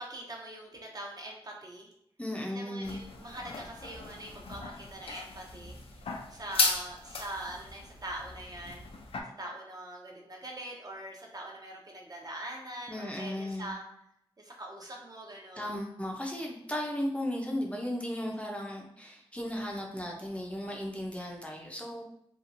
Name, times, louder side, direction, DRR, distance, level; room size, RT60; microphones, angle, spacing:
voice 1, 0.0-1.9 2.5-6.0 6.3-8.8 9.4-13.8 14.4-15.8, right 1 dB, 40° right, 0 dB, 0.7 m, -43 dB
voice 2, 2.2-3.1 12.9-13.7 15.6-22.0, left 1 dB, 15° left, -1 dB, 0.5 m, -36 dB
sound 1, 2.8-9.2, left 4 dB, 70° left, 0.4 m, -36 dB
2.9 x 2.4 x 2.5 m, 0.75 s
cardioid pair, 60°, 10 cm